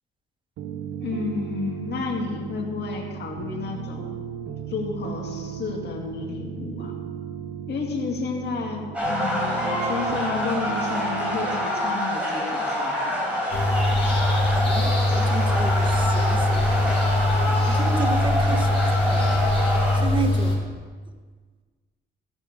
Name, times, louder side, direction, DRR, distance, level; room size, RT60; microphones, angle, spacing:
sound 1, 0.6-11.7, right 8 dB, 90° right, 0.8 m, -35 dB
voice 1, 1.0-4.3 4.7-6.9 7.7-13.4, left 4 dB, 60° left, 0 dB, 2.4 m, -31 dB
sound 2, 8.9-20.0, equal, 5° right, 4.2 m, -26 dB
sound 3, 13.5-20.6, left 1 dB, 30° left, 4.0 m, -22 dB
voice 2, 14.7-17.1 17.7-20.7, right 4 dB, 25° right, 5 dB, 1.4 m, -33 dB
16.5 x 6.6 x 6.8 m, 1.5 s
cardioid pair, 115°, 20 cm